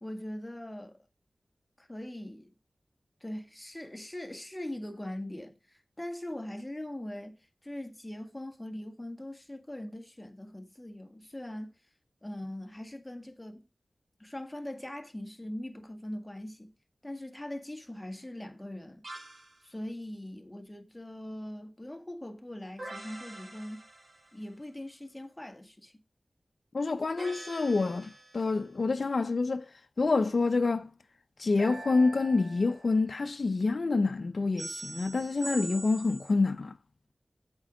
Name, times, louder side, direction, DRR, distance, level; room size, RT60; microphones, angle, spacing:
voice 1, 0.0-1.0 1.8-2.5 3.2-11.8 12.2-13.6 14.2-16.7 17.0-19.0 19.6-23.8 24.3-25.9, left 1 dB, 15° left, 1.7 m, -41 dB
sound 1, 19.0-19.6 22.8-24.5 27.2-28.6 31.6-33.1 34.6-36.3, right 2 dB, 55° right, 3.2 m, -44 dB
voice 2, 26.7-29.7 30.0-30.9 31.4-36.7, left 3 dB, 65° left, 0.6 m, -27 dB
8.1 x 5.2 x 6.2 m
cardioid pair, 45°, 0 cm